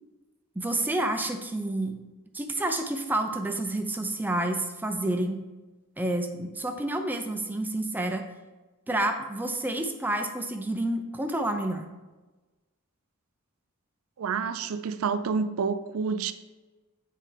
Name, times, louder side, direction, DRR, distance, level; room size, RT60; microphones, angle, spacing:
voice 1, 0.6-2.0 2.3-5.4 6.0-8.2 8.9-11.9, right 1 dB, 10° right, 5 dB, 0.5 m, -29 dB
voice 2, 14.2-16.3, right 5 dB, 75° right, 12 dB, 0.4 m, -28 dB
8.4 x 4.3 x 3.3 m, 1.2 s
head